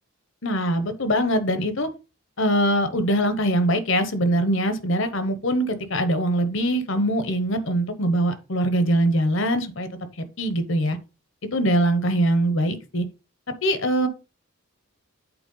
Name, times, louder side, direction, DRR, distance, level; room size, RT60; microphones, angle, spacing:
voice 1, 0.4-1.9 2.4-9.9 10.2-11.0 11.5-13.0 13.6-14.1, right 1 dB, 60° left, 1.0 m, -22 dB
8.0 x 4.4 x 3.9 m
head